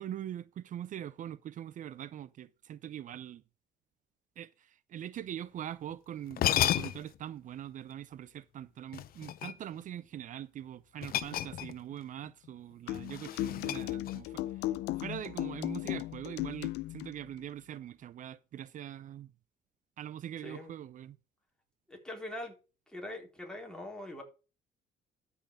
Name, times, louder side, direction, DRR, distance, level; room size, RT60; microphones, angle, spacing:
voice 1, 0.0-3.4 4.4-14.7 15.0-19.3 20.0-21.2, right 10 dB, 50° right, 0.5 m, -43 dB
sound 1, 5.9-6.0 6.3-7.2 8.9-9.8 11.0-12.0 12.2-12.5 12.9-14.4, left 12 dB, 60° left, 0.8 m, -33 dB
sound 2, 12.9-17.1, left 16 dB, 85° left, 0.6 m, -36 dB
voice 2, 21.9-22.5 22.9-24.2, left 1 dB, 5° left, 4.2 m, -42 dB
13.0 x 5.8 x 4.9 m
cardioid pair, 110°, 17 cm